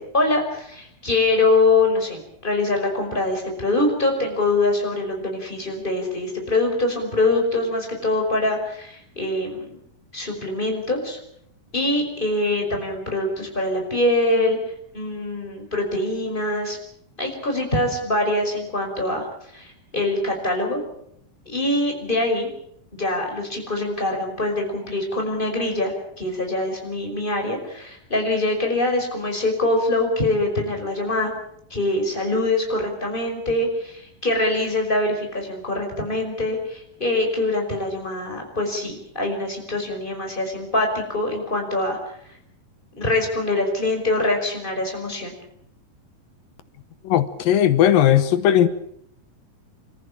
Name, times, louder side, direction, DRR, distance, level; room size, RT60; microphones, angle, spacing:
voice 1, 0.0-9.7 10.1-11.2 11.7-14.6 14.9-16.8 17.2-19.3 19.5-20.8 21.5-22.5 22.9-31.3 31.7-42.0 43.0-45.3, left 2 dB, 15° left, 2 dB, 5.5 m, -24 dB
voice 2, 47.0-48.7, left 10 dB, 75° left, 12 dB, 2.7 m, -17 dB
28.0 x 14.5 x 8.7 m, 0.71 s
omnidirectional pair, 4.2 m